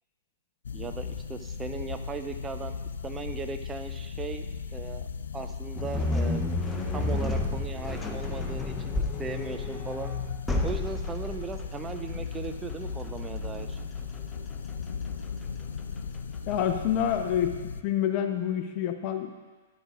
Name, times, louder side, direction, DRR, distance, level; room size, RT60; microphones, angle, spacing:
sound 1, 0.6-17.8, left 5 dB, 70° left, 0.4 m, -36 dB
voice 1, 0.7-2.8 3.0-4.4 4.7-5.1 5.3-6.4 6.9-10.1 10.6-13.8, right 5 dB, 15° right, 7 dB, 0.4 m, -38 dB
sound 2, 5.7-16.9, left 2 dB, 10° left, 0.8 m, -33 dB
voice 2, 16.4-17.5 17.8-19.3, left 9 dB, 35° left, 7 dB, 0.8 m, -27 dB
13.0 x 10.5 x 2.5 m, 1.3 s
figure-of-eight pair, 105°, 0 cm